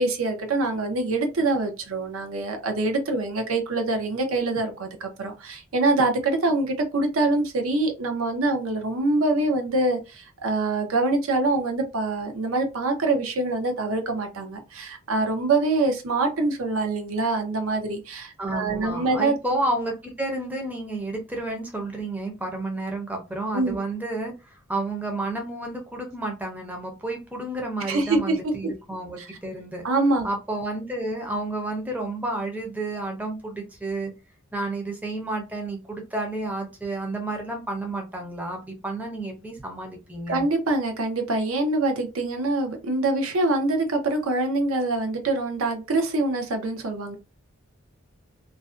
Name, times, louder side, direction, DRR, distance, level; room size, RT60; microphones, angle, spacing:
voice 1, 0.0-19.3 23.5-23.8 27.9-28.5 29.8-30.3 40.3-47.2, right 2 dB, 80° right, 4 dB, 0.6 m, -25 dB
voice 2, 18.4-29.8 30.2-34.1 34.5-40.5, right 2 dB, 10° right, 1 dB, 0.5 m, -31 dB
2.4 x 2.1 x 2.4 m, 0.29 s
head